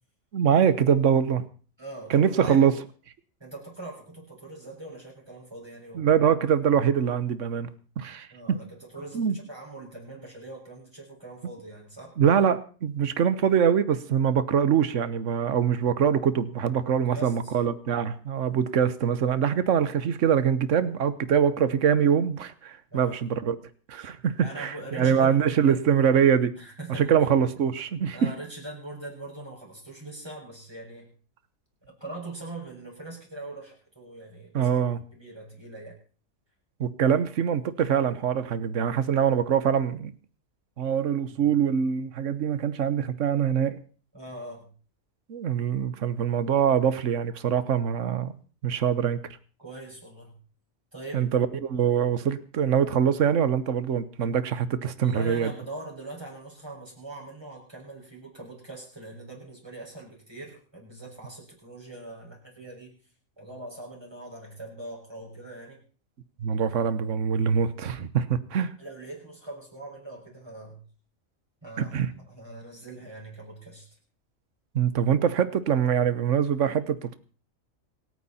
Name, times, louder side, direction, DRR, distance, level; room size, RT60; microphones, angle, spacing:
voice 1, 0.3-1.4 2.1-2.7 5.9-7.7 8.0-8.6 9.1-9.4 12.2-23.6 23.9-26.5 27.0-28.2 34.5-35.0 36.8-40.1 40.8-43.8 45.3-48.3 48.6-49.2 51.1-55.5 66.4-68.7 71.8-72.1 74.7-77.2, right 8 dB, 65° right, 14 dB, 1.4 m, -24 dB
voice 2, 1.8-2.6 3.4-6.2 8.3-12.1 17.1-17.5 22.9-23.3 24.4-25.8 26.6-27.1 28.1-31.1 31.8-34.7 35.1-36.0 41.3-41.4 44.1-44.7 49.6-50.4 50.9-51.3 55.0-62.9 63.4-65.8 68.8-70.8 71.6-73.9, right 2 dB, 20° right, -2 dB, 6.3 m, -42 dB
26.5 x 9.4 x 4.3 m, 0.39 s
omnidirectional pair, 1.4 m